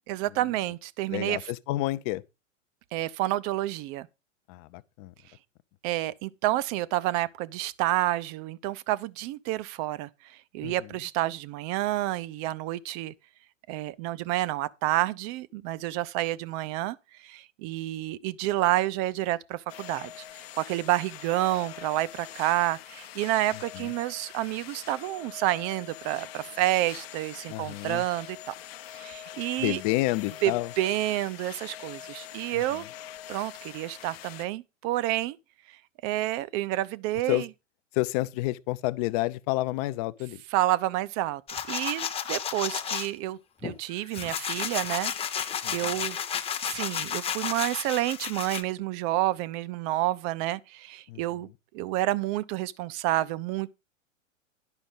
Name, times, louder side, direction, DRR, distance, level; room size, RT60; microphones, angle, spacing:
voice 1, 0.1-1.4 2.9-4.1 5.8-13.1 13.7-17.0 17.2-20.2 20.6-28.5 28.9-29.8 30.4-32.8 33.3-35.4 36.0-37.5 40.5-41.4 41.7-46.2 46.6-51.5 51.7-53.7, right 15 dB, 30° right, 0.6 m, -29 dB
voice 2, 1.1-2.2 4.5-5.1 10.6-10.7 23.7-23.9 27.5-28.0 29.6-30.7 32.5-32.9 37.3-37.4 37.9-40.4 45.6-45.9 51.1-51.2, left 19 dB, 30° left, 0.6 m, -29 dB
sound 1, 19.7-34.4, left 12 dB, 50° left, 0.9 m, -44 dB
sound 2, 41.5-43.1 43.6-48.6, left 8 dB, 15° left, 0.9 m, -32 dB
11.0 x 5.9 x 5.4 m
figure-of-eight pair, 100°, 38 cm